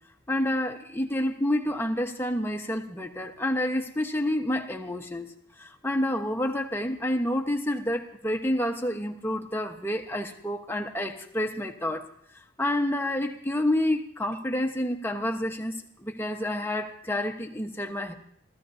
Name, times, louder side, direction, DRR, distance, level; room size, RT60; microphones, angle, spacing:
voice 1, 0.3-5.3 5.6-12.0 12.6-18.1, left 1 dB, 10° left, 4 dB, 1.2 m, -29 dB
28.5 x 14.5 x 2.8 m, 0.67 s
head